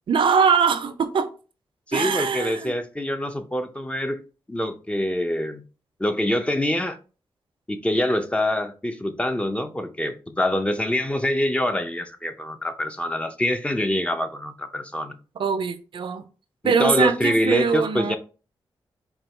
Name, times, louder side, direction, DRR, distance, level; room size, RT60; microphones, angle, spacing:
voice 1, 0.1-1.3 1.9-2.7 15.4-16.2 16.6-18.2, right 6 dB, 65° right, 0.5 m, -22 dB
voice 2, 1.9-4.2 4.5-5.6 6.0-7.0 7.7-15.1 16.6-18.2, left 1 dB, 15° left, 0.5 m, -25 dB
4.4 x 2.3 x 3.2 m
cardioid pair, 70°, 9 cm